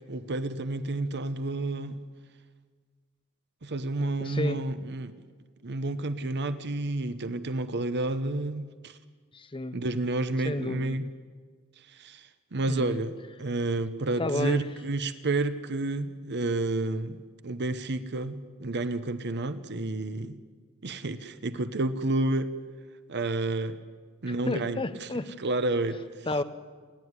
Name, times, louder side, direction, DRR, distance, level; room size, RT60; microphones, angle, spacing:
voice 1, 0.1-2.0 3.6-5.1 5.6-9.0 9.7-11.1 11.8-20.4 20.8-22.5 23.1-23.8 24.2-25.1 25.4-26.3, right 2 dB, 50° right, 11 dB, 0.9 m, -30 dB
voice 2, 4.2-4.7 9.3-9.8 10.4-11.1 12.7-13.0 14.2-14.6 24.3-25.3 26.3-26.4, left 2 dB, 25° left, 11 dB, 0.9 m, -31 dB
28.5 x 11.5 x 9.7 m, 1.5 s
head